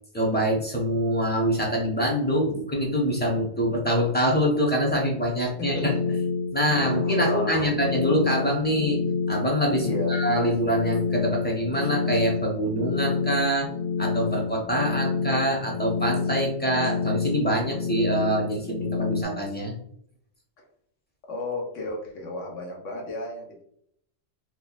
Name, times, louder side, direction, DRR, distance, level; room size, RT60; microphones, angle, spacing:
voice 1, 0.1-6.1 6.5-9.0 9.3-13.7 14.0-19.7, equal, 10° left, -1 dB, 0.6 m, -25 dB
sound 1, 5.5-19.2, left 5 dB, 55° left, 0.8 m, -28 dB
voice 2, 5.6-6.0 6.6-8.0 9.8-10.1 21.3-23.6, left 2 dB, 75° left, 0 dB, 1.3 m, -34 dB
2.8 x 2.4 x 3.9 m, 0.69 s
omnidirectional pair, 1.3 m